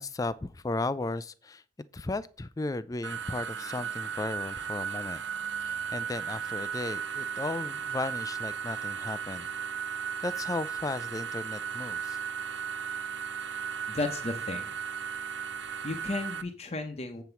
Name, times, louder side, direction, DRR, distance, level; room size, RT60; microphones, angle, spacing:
voice 1, 0.0-1.6 1.9-5.2 5.6-9.5 10.2-12.2, left 2 dB, 20° left, 0.3 m, -35 dB
sound 1, 3.0-16.4, right 7 dB, 90° right, 0.8 m, -35 dB
voice 2, 13.9-14.7 15.8-17.2, left 2 dB, 35° left, 0.8 m, -34 dB
8.0 x 4.4 x 6.9 m
head